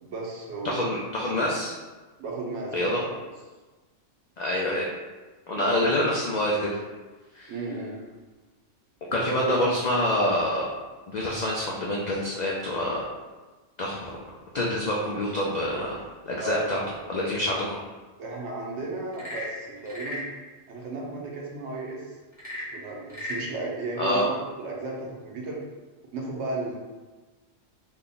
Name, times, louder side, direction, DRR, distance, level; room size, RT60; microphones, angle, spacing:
voice 1, 0.0-0.9 2.2-3.1 5.6-5.9 7.5-8.0 9.1-9.5 16.4-16.8 18.2-20.2 20.7-22.1 22.7-25.6 26.1-26.8, right 3 dB, 65° right, -2 dB, 1.0 m, -34 dB
voice 2, 0.6-1.7 2.7-3.0 4.4-4.9 5.5-6.8 7.3-7.5 9.1-10.7 11.1-13.0 13.8-14.1 14.5-16.8 17.1-17.8 24.0-24.3, left 1 dB, 75° left, -3 dB, 0.4 m, -26 dB
Frog / Percussion / Wood, 19.0-20.3 22.3-23.5, left 1 dB, 10° right, 0.9 m, -35 dB
3.5 x 2.2 x 3.8 m, 1.3 s
omnidirectional pair, 1.3 m